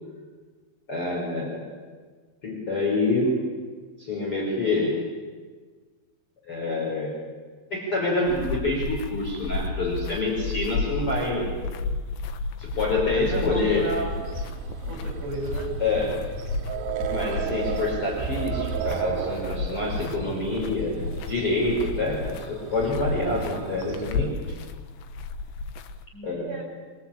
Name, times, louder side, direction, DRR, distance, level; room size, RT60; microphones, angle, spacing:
voice 1, 0.9-1.7 2.4-3.4 4.0-5.0 6.5-7.1 7.7-11.5 12.6-13.9 15.8-16.3 17.1-24.5 26.2-26.5, left 2 dB, 30° left, -3 dB, 5.8 m, -27 dB
sound 1, 8.3-26.0, left 3 dB, 85° left, 3.4 m, -33 dB
voice 2, 13.1-14.2 14.9-15.7 26.1-26.6, right 2 dB, 45° right, 1 dB, 7.0 m, -32 dB
sound 2, 13.4-24.3, right 10 dB, 75° right, 3.3 m, -35 dB
25.5 x 23.5 x 8.8 m, 1.5 s
omnidirectional pair, 5.1 m